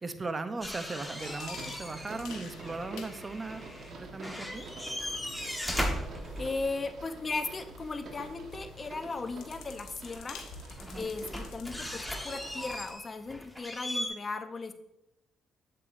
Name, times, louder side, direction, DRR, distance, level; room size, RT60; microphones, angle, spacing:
voice 1, 0.0-4.7 10.8-11.1, right 3 dB, 25° right, 10 dB, 0.6 m, -38 dB
sound 1, 0.6-2.2 2.5-3.9 4.2-7.0 9.3-9.4 10.0-14.1, equal, 5° left, 1.2 m, -38 dB
sound 2, 1.2-12.9, left 6 dB, 90° left, 0.9 m, -52 dB
sound 3, 1.2-12.8, right 2 dB, 65° right, 1.3 m, -47 dB
voice 2, 6.4-10.4 10.9-14.7, left 3 dB, 30° left, 9 dB, 0.7 m, -37 dB
8.1 x 7.6 x 2.6 m, 0.87 s
cardioid pair, 90°, 0 cm